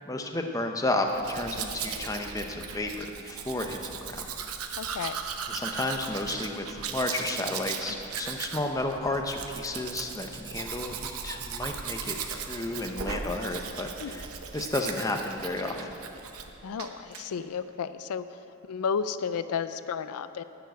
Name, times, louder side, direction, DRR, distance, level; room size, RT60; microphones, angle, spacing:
voice 1, 0.1-4.2 5.5-14.3 14.5-15.9, left 2 dB, 15° left, 3 dB, 0.6 m, -32 dB
Domestic sounds home sounds, 1.1-16.5 16.8-17.2, right 6 dB, 80° right, 0.8 m, -37 dB
voice 2, 4.8-5.2 14.0-14.2 16.6-18.2 18.7-20.4, left 6 dB, 85° left, 12 dB, 0.4 m, -32 dB
10.5 x 7.1 x 9.2 m, 2.9 s
head